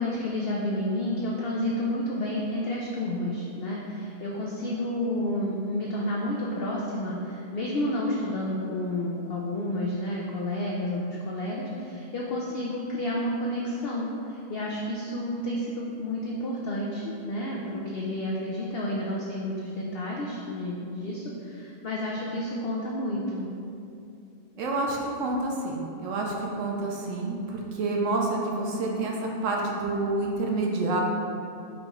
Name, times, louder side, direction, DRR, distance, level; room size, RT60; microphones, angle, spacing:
voice 1, 0.0-23.5, left 1 dB, 75° left, -3 dB, 0.5 m, -30 dB
voice 2, 24.6-31.0, right 2 dB, 65° right, -1 dB, 0.9 m, -28 dB
4.9 x 3.0 x 3.5 m, 2.6 s
omnidirectional pair, 1.5 m